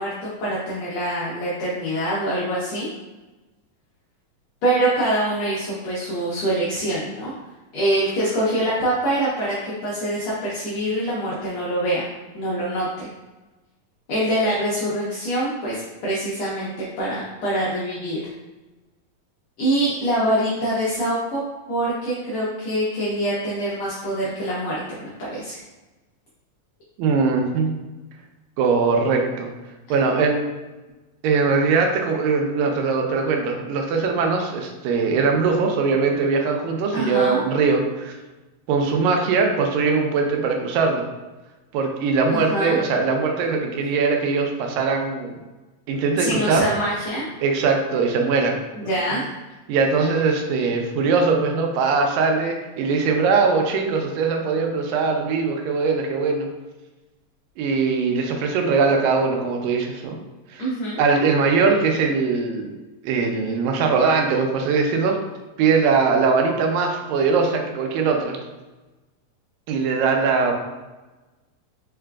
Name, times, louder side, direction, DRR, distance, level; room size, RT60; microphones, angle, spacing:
voice 1, 0.0-2.9 4.6-7.3 7.7-12.1 12.3-13.1 14.1-18.2 19.6-21.4 21.7-24.7 25.0-25.6 36.9-37.4 42.3-42.8 46.2-47.2 48.7-49.3 60.6-61.0, right 1 dB, 80° left, -6 dB, 1.5 m, -24 dB
voice 2, 27.0-27.7 28.6-29.5 29.9-30.4 31.2-38.1 38.7-41.0 41.7-45.4 45.9-46.6 47.4-48.9 49.7-56.5 57.6-60.2 60.5-60.7 61.0-62.7 63.0-65.2 65.6-68.4 69.7-70.5, right 4 dB, 85° right, 3 dB, 2.3 m, -21 dB
4.8 x 4.2 x 2.3 m, 1.1 s
omnidirectional pair, 4.0 m